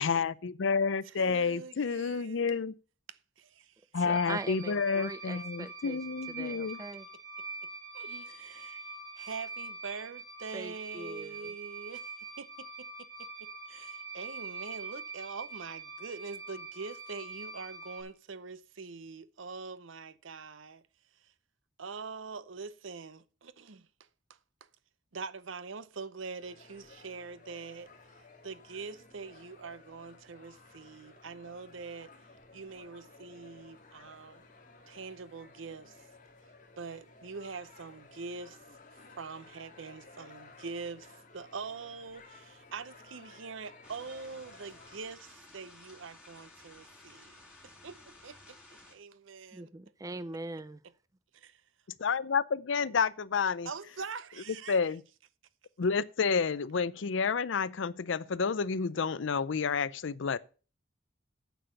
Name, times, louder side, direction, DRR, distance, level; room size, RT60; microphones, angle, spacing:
voice 1, 0.0-2.7 3.9-6.8 52.0-53.7 54.7-55.0 55.8-60.4, left 5 dB, 65° left, 0.5 m, -30 dB
voice 2, 1.0-2.4 3.1-3.7 7.9-8.9 9.2-12.1 12.4-13.1 13.4-20.8 21.8-23.9 25.1-27.9 28.4-32.1 32.5-34.4 34.9-36.0 36.8-38.6 39.1-47.4 47.6-49.7 50.8-50.9 51.3-51.6 53.6-55.0, right 4 dB, 75° right, 0.7 m, -44 dB
voice 3, 3.9-6.0 6.4-7.1 10.5-11.5 49.5-50.8, right 2 dB, 15° right, 0.4 m, -41 dB
sound 1, 4.1-18.0, right 4 dB, 50° right, 3.6 m, -44 dB
sound 2, 26.4-45.0, left 3 dB, 40° left, 2.1 m, -56 dB
sound 3, 43.8-48.9, left 2 dB, ahead, 5.3 m, -55 dB
9.1 x 7.0 x 6.5 m
head